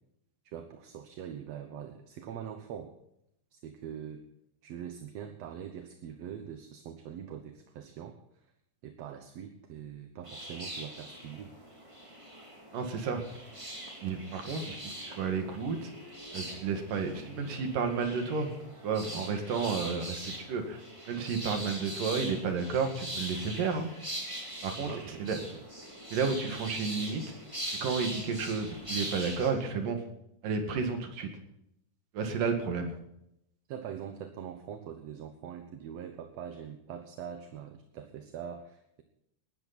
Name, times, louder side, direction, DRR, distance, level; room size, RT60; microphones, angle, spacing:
voice 1, 0.4-2.9 3.5-4.2 4.6-8.5 8.8-11.5 24.9-25.6 33.7-39.0, right 8 dB, 60° right, 6 dB, 2.0 m, -43 dB
sound 1, 10.2-29.5, right 1 dB, 10° right, 2.6 m, -42 dB
voice 2, 12.7-13.2 14.0-15.9 16.3-18.5 18.8-20.8 21.1-23.9 24.6-25.4 26.1-27.2 27.8-30.0 30.4-31.3 32.1-32.9, right 5 dB, 85° right, 5 dB, 3.7 m, -32 dB
19.5 x 12.5 x 4.3 m, 0.79 s
omnidirectional pair, 3.7 m